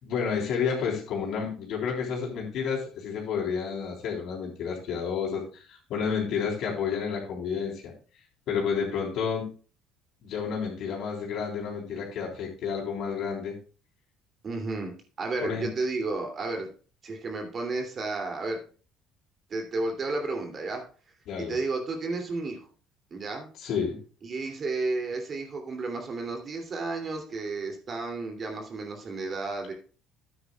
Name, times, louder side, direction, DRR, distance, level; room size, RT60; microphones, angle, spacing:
voice 1, 0.0-7.9 8.5-9.5 10.2-13.6 15.4-15.7 21.3-21.6 23.6-24.0, left 6 dB, 65° left, -2 dB, 3.7 m, -30 dB
voice 2, 14.4-16.7 17.0-18.6 19.5-20.8 21.4-22.6 23.1-23.5 24.2-29.7, right 3 dB, 45° right, 3 dB, 2.8 m, -32 dB
13.0 x 9.4 x 2.4 m, 0.38 s
supercardioid pair, 70°, 0 cm